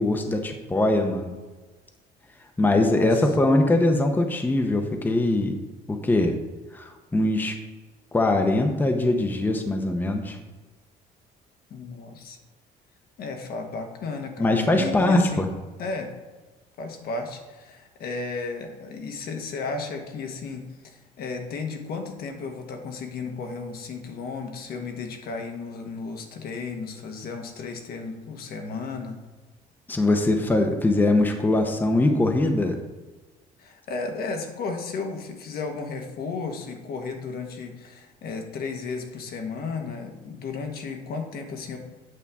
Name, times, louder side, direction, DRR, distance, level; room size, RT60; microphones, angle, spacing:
voice 1, 0.0-1.3 2.6-5.6 5.9-6.4 6.7-7.5 8.1-10.4 14.4-15.5 29.9-32.8, left 2 dB, 10° left, 4 dB, 0.7 m, -22 dB
voice 2, 2.6-3.3 11.7-12.4 13.2-15.4 15.8-16.2 16.8-29.2 33.6-41.8, left 4 dB, 65° left, 4 dB, 1.3 m, -34 dB
8.5 x 5.5 x 3.6 m, 1.3 s
cardioid pair, 110°, 17 cm